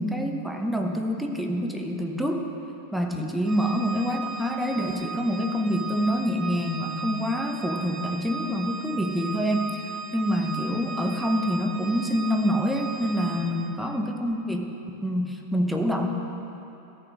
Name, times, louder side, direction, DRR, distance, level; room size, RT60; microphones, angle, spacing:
voice 1, 0.0-2.4 2.9-9.8 10.1-16.1, equal, ahead, 2 dB, 0.9 m, -26 dB
Organ, 3.4-13.8, right 4 dB, 25° right, 0.6 m, -37 dB
13.0 x 5.4 x 6.3 m, 3.0 s
figure-of-eight pair, 90°, 0 cm